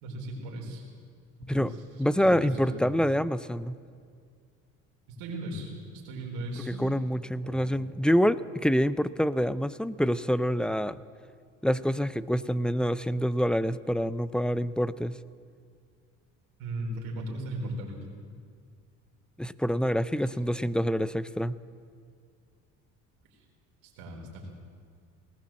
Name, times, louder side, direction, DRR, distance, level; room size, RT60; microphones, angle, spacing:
voice 1, 0.0-0.8 1.4-1.8 2.1-2.9 5.1-6.9 7.4-7.9 16.6-18.0 20.2-20.3 23.3-23.4 23.8-24.5, right 1 dB, 80° right, -1 dB, 4.4 m, -38 dB
voice 2, 2.0-3.8 6.7-11.0 11.6-15.1 19.4-21.5, equal, ahead, 15 dB, 0.6 m, -26 dB
19.0 x 18.0 x 7.5 m, 2.2 s
supercardioid pair, 80°, 35 cm